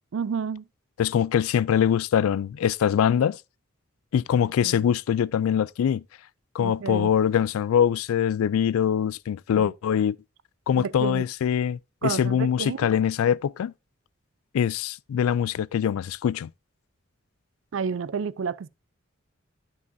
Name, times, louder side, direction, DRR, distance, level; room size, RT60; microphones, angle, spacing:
voice 1, 0.1-0.6 4.6-4.9 6.6-7.1 9.5-9.7 10.8-11.2 12.0-12.9 17.7-18.7, right 6 dB, 65° right, 0.4 m, -30 dB
voice 2, 1.0-3.4 4.1-6.0 6.5-10.2 10.7-13.7 14.5-16.5, left 8 dB, 90° left, 0.3 m, -23 dB
12.0 x 5.6 x 2.6 m
head